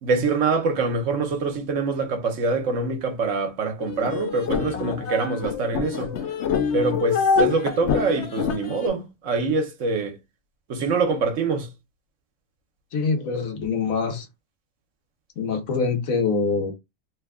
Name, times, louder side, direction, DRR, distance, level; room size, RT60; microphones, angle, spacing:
voice 1, 0.0-6.2 6.7-10.2 10.7-11.7, right 4 dB, 70° right, 1.2 m, -25 dB
sound 1, 3.8-8.9, left 5 dB, 65° left, 0.8 m, -25 dB
voice 2, 12.9-14.3 15.4-16.7, left 4 dB, 85° left, 1.3 m, -24 dB
3.2 x 2.2 x 3.5 m
omnidirectional pair, 1.4 m